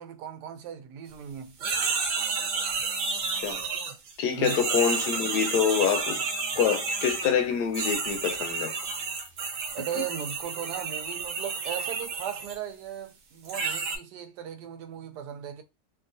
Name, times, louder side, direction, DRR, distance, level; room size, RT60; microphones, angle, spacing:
voice 1, 0.0-1.5 4.3-4.6 9.7-15.6, right 9 dB, 85° right, 1.2 m, -37 dB
sound 1, 1.6-4.1 4.4-7.3 7.7-12.6 13.5-14.0, right 4 dB, 60° right, 1.0 m, -31 dB
voice 2, 4.2-6.2 6.6-8.7 9.9-10.0, left 7 dB, 80° left, 1.2 m, -26 dB
2.9 x 2.6 x 2.6 m
omnidirectional pair, 1.7 m